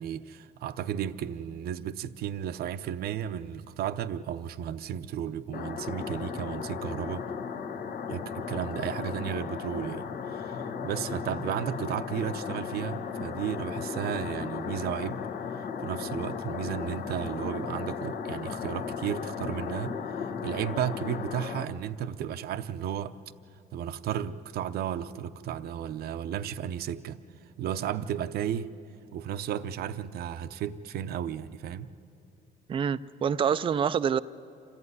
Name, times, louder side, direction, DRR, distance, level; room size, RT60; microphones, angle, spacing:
voice 1, 0.0-7.3 8.1-15.2 15.8-20.0 20.4-23.1 23.7-27.2 27.6-28.7 29.1-31.9, right 9 dB, 65° right, 0.7 m, -34 dB
sound 1, 5.5-21.6, left 6 dB, 60° left, 1.3 m, -36 dB
voice 2, 32.7-34.2, right 7 dB, 30° right, 0.4 m, -26 dB
26.5 x 14.5 x 9.7 m
cardioid pair, 110°, 17 cm